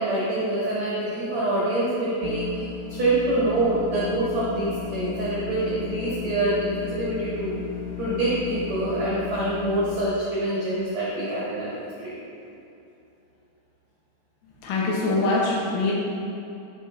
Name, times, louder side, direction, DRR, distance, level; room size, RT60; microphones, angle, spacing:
voice 1, 0.0-7.5 8.0-11.7 12.0-12.1, right 2 dB, 80° right, -9 dB, 1.5 m, -25 dB
sound 1, 2.2-10.3, left 13 dB, 90° left, 2.6 m, -35 dB
voice 2, 14.6-15.9, left 2 dB, 70° left, -4 dB, 3.3 m, -23 dB
12.5 x 4.4 x 4.3 m, 2.8 s
omnidirectional pair, 5.9 m